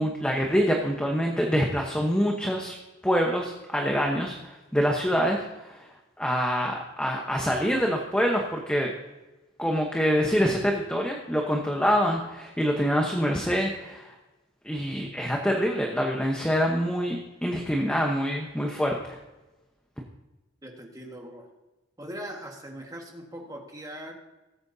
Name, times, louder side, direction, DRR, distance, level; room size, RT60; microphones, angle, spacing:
voice 1, 0.0-2.8 3.0-5.9 6.2-8.9 9.6-14.1 14.6-19.2, equal, 5° left, 0 dB, 1.0 m, -26 dB
voice 2, 20.6-21.5 22.0-24.1, equal, 15° right, 1 dB, 1.6 m, -40 dB
19.5 x 8.7 x 2.8 m, 1.1 s
head